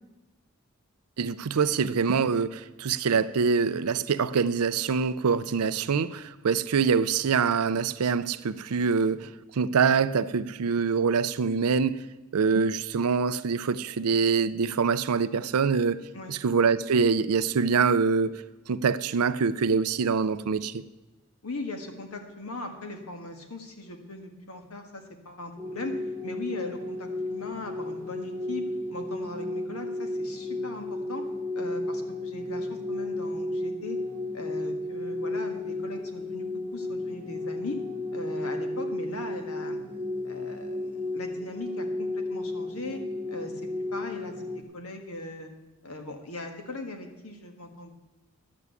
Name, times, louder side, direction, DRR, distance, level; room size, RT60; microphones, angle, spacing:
voice 1, 1.2-12.0 12.3-16.0 16.3-18.4 18.7-20.8, right 5 dB, 85° right, 15 dB, 0.5 m, -25 dB
voice 2, 21.4-31.3 31.5-34.0 34.3-37.8 38.1-39.8 40.2-43.0 43.3-43.6 43.9-45.5 45.8-47.9, left 2 dB, 80° left, 5 dB, 1.6 m, -39 dB
sound 1, 25.6-44.6, left 2 dB, 10° left, 1.7 m, -33 dB
12.0 x 6.1 x 8.2 m, 1.1 s
head